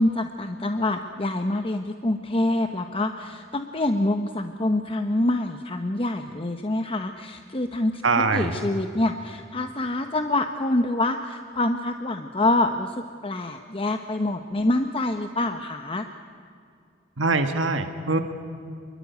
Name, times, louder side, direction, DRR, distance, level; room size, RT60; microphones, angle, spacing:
voice 1, 0.0-8.0 8.3-16.1, left 1 dB, 30° left, 7 dB, 1.0 m, -26 dB
voice 2, 8.0-8.6 17.2-18.2, right 3 dB, 70° right, 7 dB, 1.8 m, -23 dB
27.0 x 22.5 x 9.6 m, 2.4 s
head